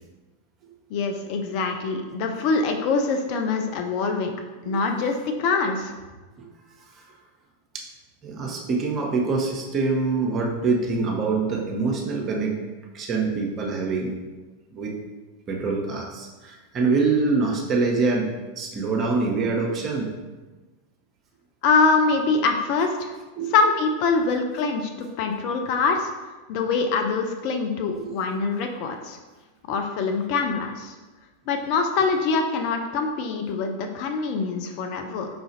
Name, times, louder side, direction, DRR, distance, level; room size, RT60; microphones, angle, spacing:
voice 1, 0.9-4.3 4.7-5.9 21.6-23.1 23.5-26.1 26.5-29.2 29.7-30.9 31.5-35.3, left 4 dB, 45° left, 4 dB, 0.4 m, -24 dB
voice 2, 8.2-12.6 12.9-14.2 14.7-14.9 15.5-20.1 23.4-23.5 27.9-28.1, right 4 dB, 30° right, -1 dB, 0.7 m, -25 dB
5.0 x 2.3 x 3.0 m, 1.2 s
figure-of-eight pair, 90°, 0 cm